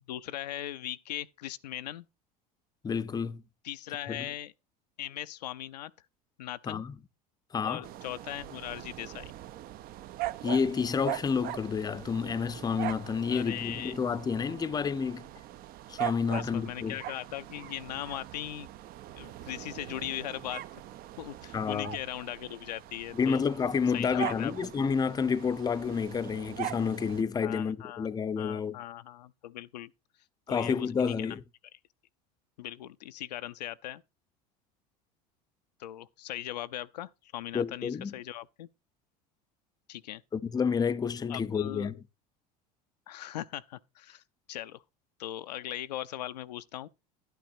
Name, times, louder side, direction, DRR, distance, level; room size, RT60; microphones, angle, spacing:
voice 1, 0.1-2.1 3.6-4.5 5.0-5.9 6.4-6.8 7.6-9.3 13.3-14.0 16.3-18.7 19.1-20.8 21.2-23.4 23.9-24.5 27.4-28.1 28.4-29.9 30.5-31.4 32.6-34.0 35.8-38.7 39.9-40.2 41.3-42.0 43.1-44.2 44.5-44.8 45.2-46.9, left 13 dB, 85° left, 0.5 m, -39 dB
voice 2, 2.8-3.4 4.1-4.3 6.7-6.9 7.5-7.8 10.4-15.3 15.9-17.0 21.5-21.9 23.1-28.8 30.5-31.4 37.5-38.1 40.3-41.9, left 6 dB, 20° left, 0.5 m, -29 dB
sound 1, 7.8-27.2, right 14 dB, 45° right, 0.5 m, -41 dB
11.0 x 9.2 x 2.6 m
hypercardioid pair, 85°, 20 cm